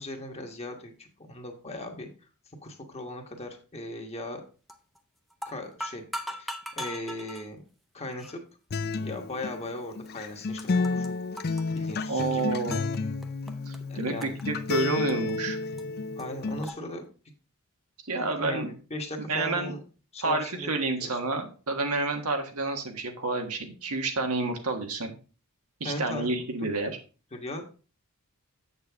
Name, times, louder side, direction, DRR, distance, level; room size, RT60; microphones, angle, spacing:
voice 1, 0.0-2.1 2.6-4.4 5.4-6.0 6.3-7.6 7.9-8.4 9.0-11.1 11.7-12.6 13.9-14.4 16.2-17.0 18.1-19.8 20.1-20.7 21.0-21.2 25.8-26.5 26.8-26.9 27.3-27.6, left 1 dB, 30° left, 3 dB, 1.4 m, -38 dB
sound 1, 4.7-5.0 5.3-7.4 8.2-8.4 9.1-9.2 10.0-10.1 10.3-11.1 11.4-13.0 13.2-13.8 14.2-15.4 15.8-15.9 16.2-16.3 16.6-16.8, equal, ahead, 0.7 m, -39 dB
Acoustic guitar, 8.7-16.7, left 3 dB, 45° left, 0.5 m, -31 dB
voice 2, 12.1-12.8 13.7-15.6 18.0-18.7 19.3-19.7 20.2-25.1 25.8-26.9, right 3 dB, 90° right, 4 dB, 1.5 m, -29 dB
7.8 x 6.6 x 3.5 m, 0.35 s
head